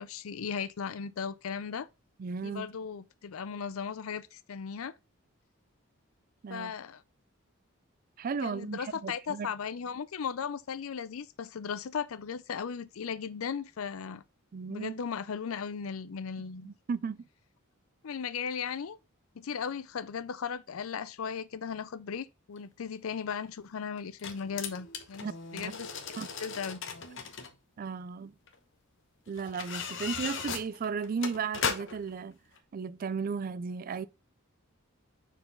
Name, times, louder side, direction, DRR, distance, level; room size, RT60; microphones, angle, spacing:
voice 1, 0.0-1.9 2.4-4.9 6.5-7.0 8.4-14.2 14.7-16.7 18.0-19.0 19.4-25.9 26.4-26.8, left 6 dB, 75° left, 0.5 m, -37 dB
voice 2, 2.2-2.7 6.4-6.7 8.2-9.5 14.5-14.9 16.6-17.2 25.2-25.7 26.2-26.3 27.8-28.3 29.3-32.4 32.7-34.1, right 5 dB, 40° right, 0.3 m, -35 dB
sound 1, 22.6-22.7 24.0-27.5 28.5-28.6 29.4-32.1 32.6-32.7, left 6 dB, 60° left, 1.0 m, -37 dB
4.6 x 4.0 x 5.3 m
head